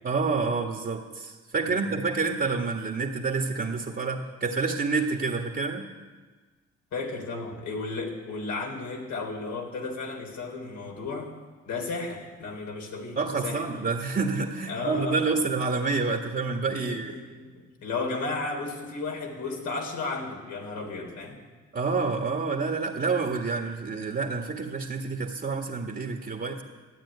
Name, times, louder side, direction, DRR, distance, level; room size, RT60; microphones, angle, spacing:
voice 1, 0.0-5.9 13.1-17.1 21.7-26.6, right 4 dB, 35° right, 2 dB, 1.7 m, -28 dB
voice 2, 6.9-11.3 11.7-13.6 14.7-15.4 16.8-21.4, left 3 dB, 75° left, 1 dB, 3.5 m, -34 dB
13.0 x 9.0 x 9.6 m, 1.4 s
supercardioid pair, 65°, 29 cm